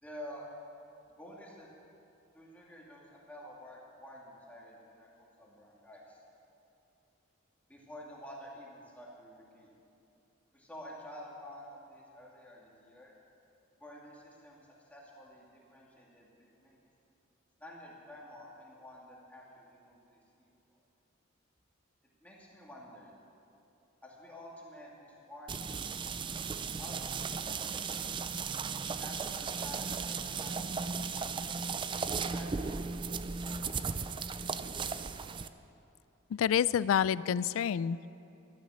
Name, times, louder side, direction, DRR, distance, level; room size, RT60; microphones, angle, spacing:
voice 1, 0.0-0.5 1.1-1.7 2.3-6.2 7.7-9.7 10.5-13.1 13.8-16.8 17.6-20.8 22.2-23.1 24.0-25.8 26.8-28.0 28.8-31.8 32.3-34.2, left 1 dB, 5° left, -4 dB, 2.3 m, -50 dB
sound 1, 25.5-35.5, right 5 dB, 25° right, 0.4 m, -36 dB
voice 2, 36.3-38.1, left 8 dB, 85° left, 19 dB, 0.3 m, -28 dB
12.5 x 12.5 x 6.3 m, 2.7 s
head